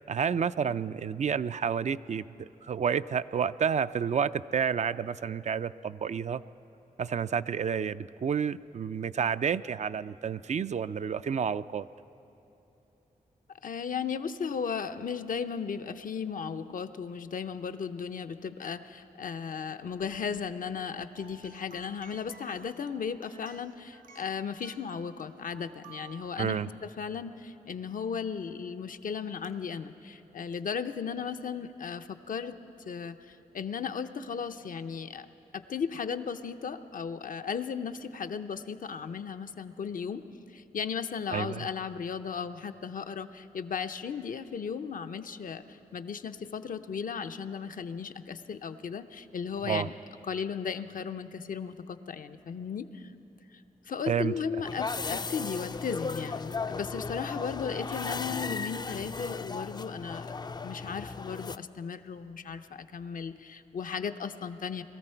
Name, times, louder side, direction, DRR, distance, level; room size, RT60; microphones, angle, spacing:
voice 1, 0.1-6.4 7.0-11.9 26.4-26.7 41.3-41.7 49.6-49.9 54.1-54.3, right 7 dB, 50° right, 14 dB, 0.4 m, -30 dB
voice 2, 13.6-32.6 32.8-35.3 35.5-40.2 40.5-49.9 50.3-53.1 53.9-60.3 60.6-64.8, left 6 dB, 65° left, 9 dB, 0.6 m, -36 dB
sound 1, 21.1-27.1 29.4-29.5 30.5-30.6, right 4 dB, 70° right, 0.8 m, -55 dB
sound 2, 54.6-61.6, left 4 dB, 30° left, 0.4 m, -36 dB
22.0 x 14.0 x 4.5 m, 2.9 s
cardioid pair, 50°, 15 cm